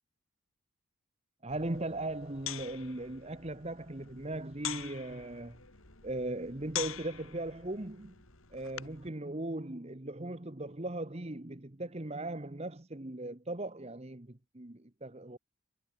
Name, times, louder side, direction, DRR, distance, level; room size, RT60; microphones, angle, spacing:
voice 1, 1.4-5.6 6.0-8.1 8.5-15.4, right 2 dB, 30° right, 1.2 m, -38 dB
sound 1, 1.5-9.1, left 10 dB, 70° left, 3.7 m, -45 dB
head